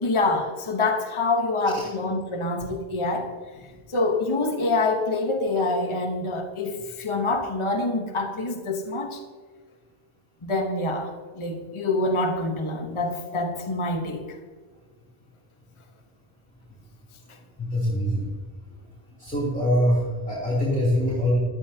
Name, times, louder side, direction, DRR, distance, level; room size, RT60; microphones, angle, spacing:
voice 1, 0.0-3.3 3.9-9.2 10.4-14.3, left 2 dB, 30° left, 4 dB, 1.1 m, -26 dB
voice 2, 17.6-18.3 19.2-21.4, equal, 5° left, -7 dB, 2.9 m, -23 dB
17.0 x 12.0 x 2.8 m, 1.5 s
omnidirectional pair, 1.1 m